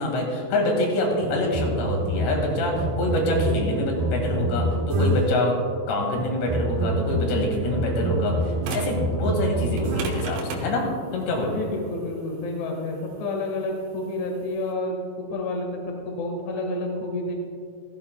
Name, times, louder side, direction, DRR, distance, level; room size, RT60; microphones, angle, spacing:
voice 1, 0.0-4.7 5.0-5.5 5.9-10.9 11.1-11.6, left 1 dB, 75° left, 0 dB, 4.1 m, -25 dB
sound 1, 1.2-5.5 6.1-10.4, right 1 dB, 65° right, 3.0 m, -27 dB
Automatic tapedeck rewind fastforward play, 8.6-9.1 9.7-14.7, right 5 dB, 80° right, 3.2 m, -36 dB
voice 2, 11.4-17.3, left 2 dB, 55° left, 0 dB, 2.3 m, -30 dB
15.5 x 15.0 x 2.3 m, 2.3 s
omnidirectional pair, 5.0 m